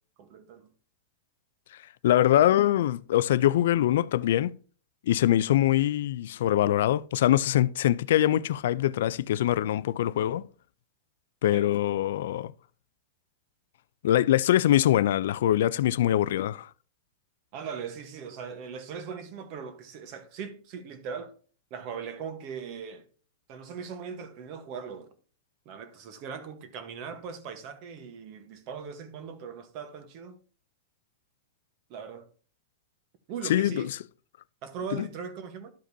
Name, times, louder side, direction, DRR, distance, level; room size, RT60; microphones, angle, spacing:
voice 1, 0.2-0.7 11.5-11.7 17.5-21.3 21.7-23.1 23.5-25.1 25.6-30.4 31.9-32.3 33.3-33.9 34.6-35.7, right 6 dB, 30° right, 1.0 m, -39 dB
voice 2, 2.0-4.5 5.1-10.4 11.4-12.5 14.0-16.7 33.5-33.9 34.9-35.1, left 12 dB, 55° left, 0.3 m, -23 dB
12.5 x 5.1 x 2.6 m
supercardioid pair, 180°, 0 cm